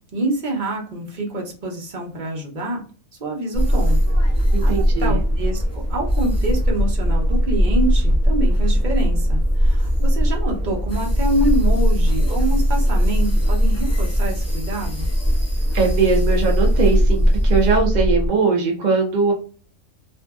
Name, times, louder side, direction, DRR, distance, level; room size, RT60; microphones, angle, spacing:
voice 1, 0.1-2.8 3.2-4.0 4.6-15.1, right 1 dB, 40° right, 0 dB, 0.8 m, -26 dB
sound 1, 3.5-18.3, equal, 15° left, 0.6 m, -19 dB
voice 2, 4.5-5.2 15.7-19.3, right 4 dB, 65° right, 1 dB, 0.4 m, -20 dB
2.6 x 2.5 x 2.3 m, 0.39 s
omnidirectional pair, 1.4 m